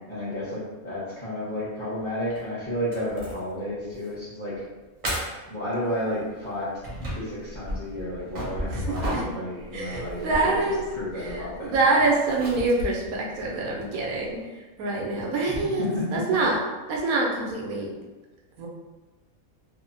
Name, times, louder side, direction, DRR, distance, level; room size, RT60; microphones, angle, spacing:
voice 1, 0.1-4.6 5.5-6.7 7.1-10.5 10.9-11.8 15.5-16.2, left 1 dB, 25° left, -11 dB, 0.8 m, -32 dB
sound 1, 2.3-2.4 2.9-3.5 3.9-4.1 4.5-4.6 5.0-5.5 6.3-14.4, equal, 40° right, 0.7 m, -36 dB
voice 2, 8.7-9.3 9.7-10.8 11.2-14.4 14.8-15.8 16.1-16.6 16.9-17.9 18.6-18.7, right 3 dB, 85° right, -1 dB, 1.1 m, -25 dB
3.0 x 2.0 x 2.6 m, 1.2 s
omnidirectional pair, 1.5 m